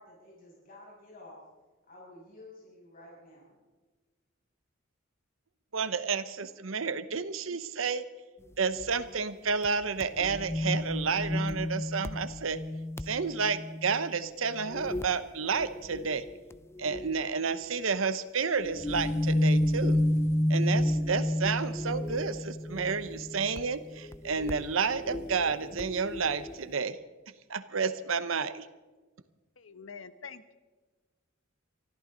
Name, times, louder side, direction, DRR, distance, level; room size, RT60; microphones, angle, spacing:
voice 1, 0.0-1.4 1.9-3.6, left 1 dB, 45° left, -4 dB, 6.6 m, -51 dB
voice 2, 5.7-8.0 8.6-12.6 13.1-16.2 16.8-20.0 20.5-27.0 27.5-28.7, right 5 dB, 80° right, 13 dB, 0.9 m, -31 dB
sound 1, 8.8-8.9 9.6-9.7 10.0-14.2 14.6-15.2 15.5-17.2 18.6-26.6, left 1 dB, 15° left, 0.5 m, -31 dB
voice 3, 29.6-30.5, left 5 dB, 75° left, 12 dB, 1.0 m, -46 dB
24.0 x 14.5 x 4.0 m, 1.3 s
head